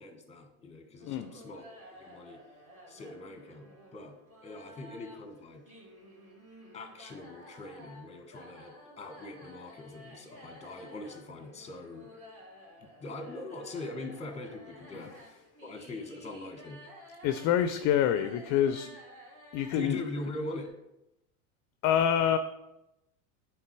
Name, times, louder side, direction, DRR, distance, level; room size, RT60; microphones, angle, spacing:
voice 1, 0.0-2.4 2.9-4.2 4.4-5.6 6.7-12.1 13.0-16.8 19.7-20.7, left 2 dB, 15° left, 5 dB, 1.1 m, -42 dB
sound 1, 1.0-20.7, equal, 30° right, 2.4 m, -53 dB
voice 2, 17.2-18.9 19.5-20.0 21.8-22.4, left 9 dB, 40° left, 10 dB, 0.4 m, -26 dB
7.9 x 3.4 x 4.6 m, 0.89 s
supercardioid pair, 110°, 44 cm